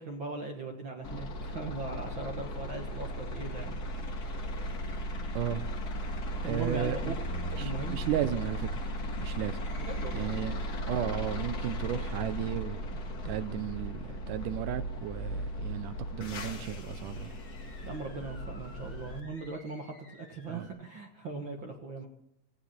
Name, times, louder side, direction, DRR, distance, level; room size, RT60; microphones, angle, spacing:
voice 1, 0.0-4.2 6.1-7.2 7.6-8.0 9.8-10.2 17.8-22.1, right 3 dB, 50° right, 3 dB, 1.7 m, -40 dB
sound 1, 1.0-19.2, equal, 50° left, 1.2 m, -36 dB
voice 2, 6.5-7.2 7.5-8.7 9.2-9.6 10.1-10.6 10.9-12.8 13.3-17.3 20.5-20.7, right 11 dB, 80° right, 13 dB, 2.3 m, -34 dB
sound 2, 9.6-11.5 17.1-20.7, left 1 dB, 5° left, 7.8 m, -56 dB
17.5 x 16.5 x 4.3 m, 0.77 s
omnidirectional pair, 3.9 m